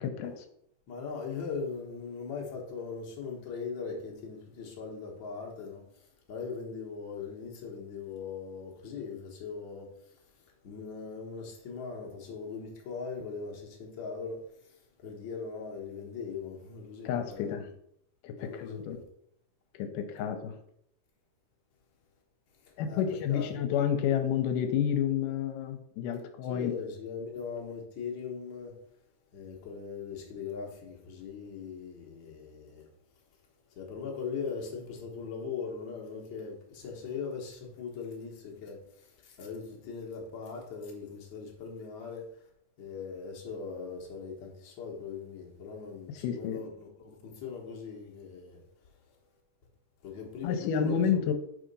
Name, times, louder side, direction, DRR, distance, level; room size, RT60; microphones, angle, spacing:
voice 1, 0.0-0.3 17.1-17.6 18.2-19.0 19.7-20.5 22.8-26.7 46.1-46.6 50.4-51.3, left 8 dB, 80° left, 2.2 m, -30 dB
voice 2, 0.9-10.2 10.6-17.7 18.4-19.0 22.6-23.5 26.5-28.8 29.3-32.9 33.7-42.3 42.8-48.6 50.0-51.2, left 5 dB, 60° left, 1.2 m, -40 dB
4.9 x 3.7 x 5.3 m
omnidirectional pair, 3.8 m